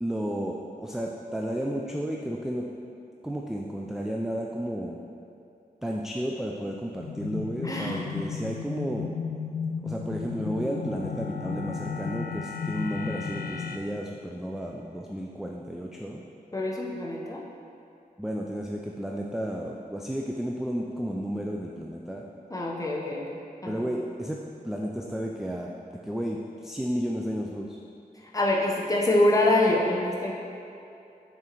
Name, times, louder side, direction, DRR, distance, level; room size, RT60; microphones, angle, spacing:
voice 1, 0.0-2.7 3.2-5.0 5.8-9.1 9.8-16.2 18.2-22.3 23.7-24.4 24.6-25.7 26.0-27.8, equal, 5° right, -1 dB, 0.3 m, -32 dB
sound 1, 7.0-13.8, left 6 dB, 70° left, 0.4 m, -34 dB
voice 2, 7.6-8.0 16.5-17.4 22.5-23.8 28.3-30.3, left 1 dB, 20° left, -2 dB, 0.8 m, -25 dB
6.0 x 3.7 x 4.4 m, 2.6 s
wide cardioid pair, 110°, 16 cm